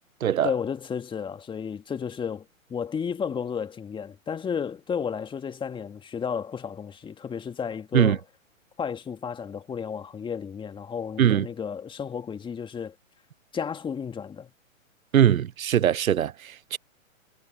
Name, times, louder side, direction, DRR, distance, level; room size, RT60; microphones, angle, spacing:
voice 1, 0.4-8.2 8.8-13.0 13.5-14.5, left 7 dB, 10° left, 2.0 m, -32 dB
voice 2, 15.1-16.8, right 10 dB, 85° right, 0.6 m, -21 dB
hypercardioid pair, 125°, 41 cm